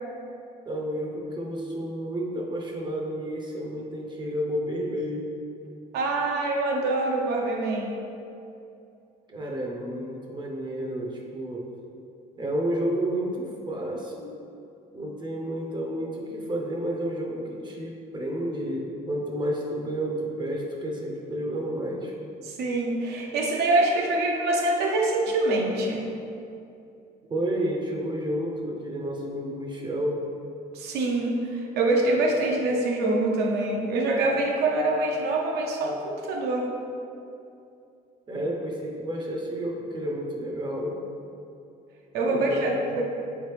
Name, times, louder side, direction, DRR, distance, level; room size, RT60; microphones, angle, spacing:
voice 1, 0.6-5.3 9.3-11.7 12.4-14.3 14.9-22.1 27.3-30.2 38.3-41.0 42.3-42.6 42.9-43.0, right 1 dB, 25° right, -1 dB, 0.5 m, -31 dB
voice 2, 5.9-8.0 22.4-26.0 30.7-36.7 42.1-43.0, right 2 dB, 75° right, 0 dB, 0.6 m, -25 dB
3.7 x 3.1 x 3.3 m, 2.6 s
cardioid pair, 110°, 17 cm